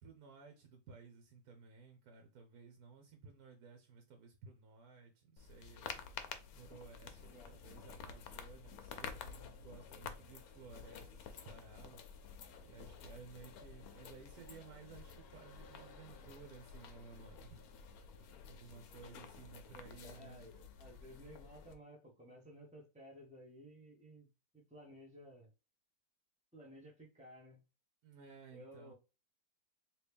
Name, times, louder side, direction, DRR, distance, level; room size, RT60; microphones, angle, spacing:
voice 1, 0.0-12.0 12.6-17.7 18.0-20.5 28.0-28.9, right 5 dB, 80° right, 1.2 m, -56 dB
sound 1, 5.4-21.8, left 6 dB, 80° left, 1.1 m, -51 dB
voice 2, 20.0-24.3 24.5-25.5 26.5-27.6 28.5-28.9, equal, 5° right, 0.8 m, -56 dB
3.0 x 2.8 x 3.4 m
omnidirectional pair, 1.6 m